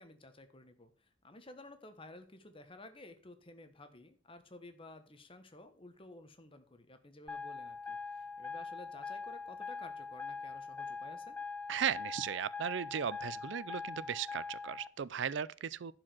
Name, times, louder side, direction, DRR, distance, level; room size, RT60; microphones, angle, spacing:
voice 1, 0.0-11.4, left 2 dB, 30° left, 1.3 m, -54 dB
sound 1, 7.3-14.9, left 4 dB, 10° left, 0.4 m, -43 dB
voice 2, 11.7-15.9, right 8 dB, 65° right, 0.4 m, -36 dB
11.0 x 5.0 x 6.0 m
head